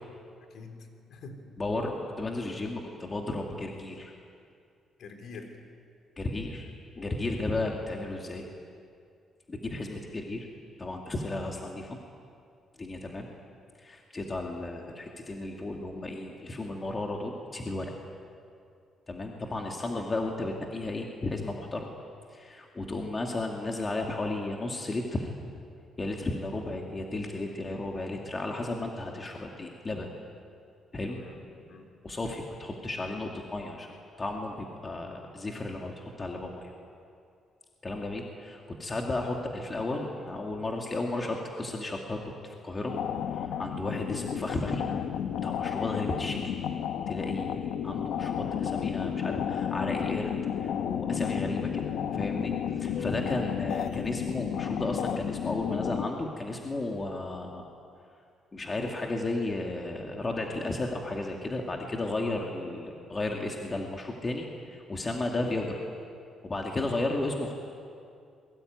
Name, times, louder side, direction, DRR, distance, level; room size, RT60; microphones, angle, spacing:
voice 1, 1.6-4.1 6.2-6.7 7.0-8.5 9.5-10.5 10.8-12.0 12.8-13.3 13.8-17.9 19.1-21.9 22.3-25.3 26.0-30.1 30.9-31.2 32.0-36.7 37.8-42.9 43.3-45.0 45.4-46.6 47.1-50.3 50.6-57.7 58.5-65.8 66.4-67.5, left 2 dB, 20° left, 1 dB, 2.2 m, -34 dB
voice 2, 5.0-5.5 7.0-7.2 19.8-20.1 31.0-31.9 51.3-51.6 52.9-53.1, left 5 dB, 60° left, 5 dB, 3.5 m, -44 dB
sound 1, 42.9-56.1, left 8 dB, 85° left, 1.1 m, -32 dB
27.5 x 22.5 x 9.4 m, 2.4 s
cardioid pair, 160°, 0 cm